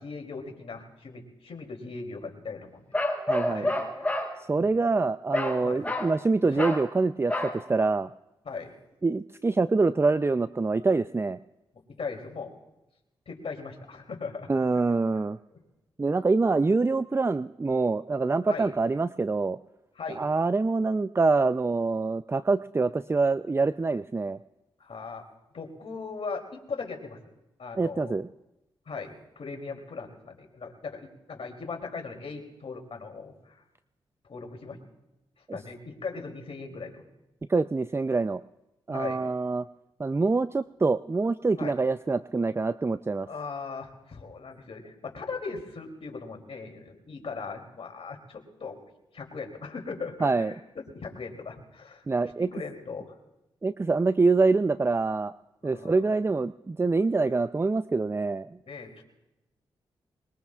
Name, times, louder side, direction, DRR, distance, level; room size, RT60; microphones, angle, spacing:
voice 1, 0.0-2.8 3.5-4.1 4.5-4.7 5.6-5.8 6.5-6.7 8.4-8.7 11.9-12.5 13.3-14.8 15.1-15.2 15.5-15.6 18.5-18.7 19.9-20.2 24.8-25.2 25.5-27.2 27.6-28.1 28.9-33.6 34.2-34.8 35.5-37.0 38.9-39.3 41.6-41.8 43.2-48.8 49.1-50.6 50.9-53.1 55.6-56.0 58.6-59.0, left 4 dB, 65° left, 2 dB, 2.9 m, -39 dB
Bark, 2.9-4.3 5.3-5.6 5.8-6.1 6.6-6.9 7.3-7.6, left 1 dB, 15° left, 4.7 m, -28 dB
voice 2, 3.3-3.6 4.5-8.1 9.0-11.4 14.5-15.4 16.0-19.6 20.2-24.4 27.8-28.3 35.5-35.6 37.5-38.4 38.9-39.7 40.0-43.3 50.2-50.5 52.1-52.5 53.6-55.3 55.6-58.5, right 3 dB, 25° right, 13 dB, 0.4 m, -25 dB
21.5 x 21.5 x 2.4 m, 0.96 s
supercardioid pair, 40°, 11 cm